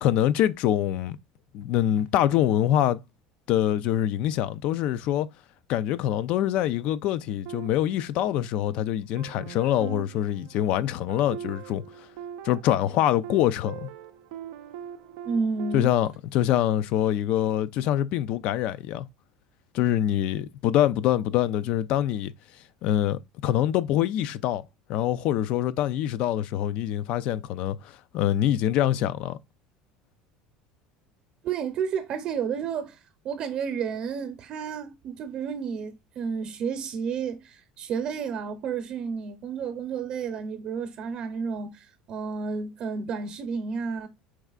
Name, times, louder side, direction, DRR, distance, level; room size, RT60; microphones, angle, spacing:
voice 1, 0.0-1.2 1.5-3.0 3.5-5.3 5.7-11.8 12.4-13.9 15.7-19.1 19.7-22.3 22.8-24.6 24.9-29.4, left 12 dB, 60° left, 0.4 m, -25 dB
sound 1, 7.5-8.7 9.2-15.8, right 9 dB, 80° right, 0.5 m, -42 dB
voice 2, 15.2-15.9 31.4-33.0 33.2-44.1, right 6 dB, 50° right, 0.8 m, -31 dB
4.7 x 3.2 x 2.3 m
supercardioid pair, 125°, 2 cm